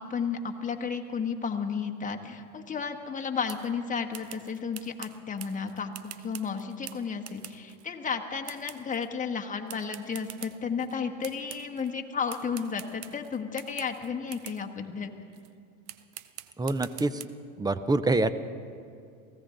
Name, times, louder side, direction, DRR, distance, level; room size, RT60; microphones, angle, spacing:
voice 1, 0.0-15.1, left 6 dB, 20° left, 4 dB, 1.3 m, -33 dB
sound 1, 3.5-3.7 4.1-7.9 8.4-9.1 9.7-10.9 11.2-11.9 12.3-14.7 15.3-15.5 15.9-17.3, right 14 dB, 70° right, 0.8 m, -45 dB
voice 2, 16.6-17.2 17.6-18.3, right 2 dB, 10° right, 13 dB, 0.5 m, -26 dB
24.0 x 15.5 x 3.8 m, 2.4 s
supercardioid pair, 100°, 43 cm